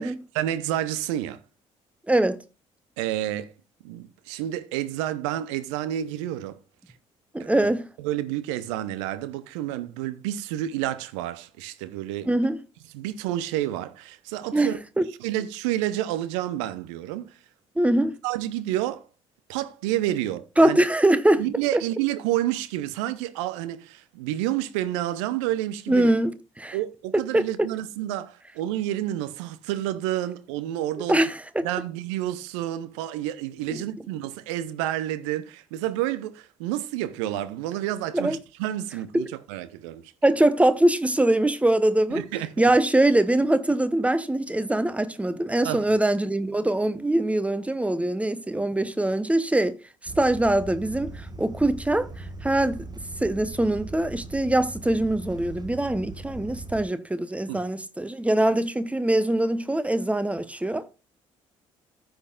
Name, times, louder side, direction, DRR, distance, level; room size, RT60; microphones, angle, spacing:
voice 1, 0.0-1.4 3.0-3.5 3.8-6.6 7.4-7.5 8.0-12.3 12.9-14.8 15.2-17.4 18.2-19.1 19.5-20.8 21.4-26.1 26.7-31.2 31.6-40.1 42.1-42.7 45.6-46.0 57.5-57.6, right 13 dB, 70° right, 0.8 m, -29 dB
voice 2, 2.1-2.4 7.3-7.9 12.3-12.6 14.5-14.7 15.0-15.1 17.8-18.2 20.6-21.4 21.7-21.8 25.9-26.8 27.1-27.4 31.1-31.7 33.7-33.8 38.1-38.4 39.1-39.3 40.2-42.2 42.6-49.8 50.0-52.9 53.2-60.8, right 1 dB, 10° right, 1.0 m, -23 dB
sound 1, 50.1-56.8, right 2 dB, 25° right, 1.4 m, -39 dB
15.0 x 6.4 x 2.4 m
figure-of-eight pair, 45°, 16 cm